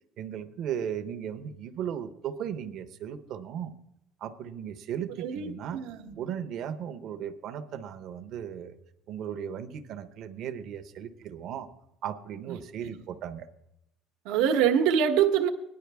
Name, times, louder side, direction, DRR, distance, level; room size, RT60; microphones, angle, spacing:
voice 1, 0.2-3.7 4.2-5.8 6.2-8.7 9.1-11.7 12.0-13.5, right 9 dB, 50° right, 8 dB, 0.8 m, -36 dB
voice 2, 5.2-6.2 12.5-12.6 14.2-15.5, right 8 dB, 85° right, 5 dB, 1.1 m, -25 dB
18.5 x 10.5 x 3.5 m, 0.82 s
cardioid pair, 160°, 0 cm